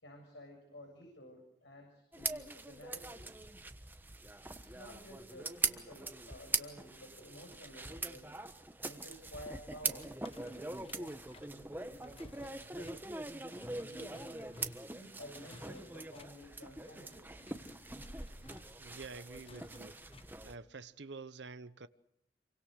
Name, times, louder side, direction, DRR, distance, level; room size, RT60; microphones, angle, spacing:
voice 1, 0.0-3.3 4.4-8.3 8.8-13.1 13.8-14.4 14.9-17.3, equal, 75° left, 7.3 m, -53 dB
sound 1, 2.1-20.5, right 3 dB, 10° right, 1.2 m, -42 dB
sound 2, 10.0-20.5, left 2 dB, 30° left, 1.2 m, -57 dB
voice 2, 18.8-20.0 20.4-21.9, right 4 dB, 75° right, 1.0 m, -48 dB
28.0 x 24.0 x 6.6 m
head